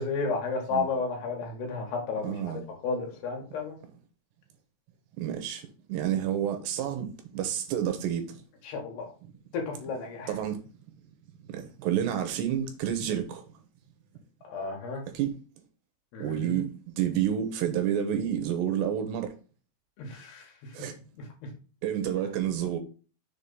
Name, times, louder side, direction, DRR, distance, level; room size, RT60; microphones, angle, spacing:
voice 1, 0.0-2.3 2.8-3.8 8.7-9.1 9.5-10.3 14.4-15.0 16.1-16.6 20.0-20.4, left 4 dB, 65° left, 3.6 m, -32 dB
voice 2, 2.2-2.6 5.2-8.4 10.3-10.6 11.5-13.4 15.1-15.4 16.2-19.3 20.7-21.0 21.8-22.8, right 10 dB, 75° right, 2.8 m, -29 dB
7.0 x 3.6 x 5.4 m
omnidirectional pair, 5.3 m